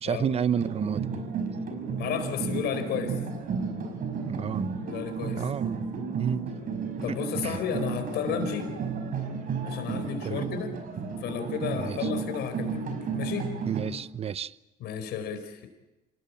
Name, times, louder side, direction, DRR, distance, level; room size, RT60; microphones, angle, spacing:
voice 1, 0.0-1.2 4.2-4.7 5.4-5.9 6.1-6.4 7.1-7.2 7.4-7.6 10.2-10.4 11.8-12.0 13.7-14.5, right 8 dB, 35° right, 0.8 m, -30 dB
sound 1, 0.6-13.8, right 5 dB, 55° right, 5.3 m, -33 dB
voice 2, 2.0-3.2 4.8-5.7 7.0-8.7 9.6-10.7 11.2-13.5 14.8-15.7, left 7 dB, 80° left, 4.5 m, -33 dB
27.5 x 18.0 x 8.6 m
cardioid pair, 110°, 17 cm